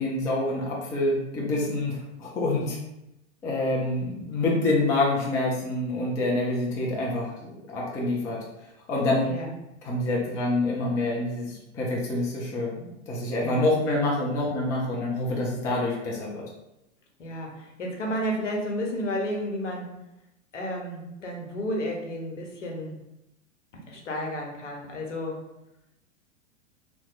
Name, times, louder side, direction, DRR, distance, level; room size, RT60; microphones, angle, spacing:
voice 1, 0.0-2.8 3.4-8.4 8.9-9.3 9.8-16.4, left 2 dB, 10° left, -3 dB, 0.3 m, -27 dB
voice 2, 9.2-9.5 13.4-13.7 17.2-19.9 20.5-23.0 23.9-25.4, equal, 75° left, 0 dB, 1.0 m, -32 dB
2.8 x 2.2 x 3.8 m, 0.90 s
hypercardioid pair, 105°, 36 cm